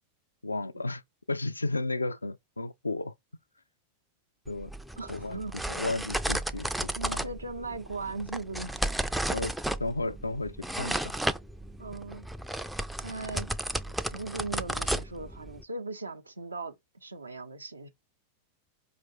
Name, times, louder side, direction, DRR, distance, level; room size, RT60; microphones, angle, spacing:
voice 1, 0.4-1.0 1.3-3.1 4.5-4.7 5.1-5.4 5.7-7.3 9.3-9.5 9.8-11.1, left 2 dB, 80° left, 0.3 m, -33 dB
sound 1, 4.5-15.6, right 1 dB, 5° right, 0.3 m, -34 dB
voice 2, 5.0-5.5 7.0-8.8 11.8-12.3 13.0-13.5 13.9-16.7 17.0-17.9, right 3 dB, 80° right, 0.5 m, -38 dB
4.6 x 2.5 x 2.9 m
figure-of-eight pair, 90°, 0 cm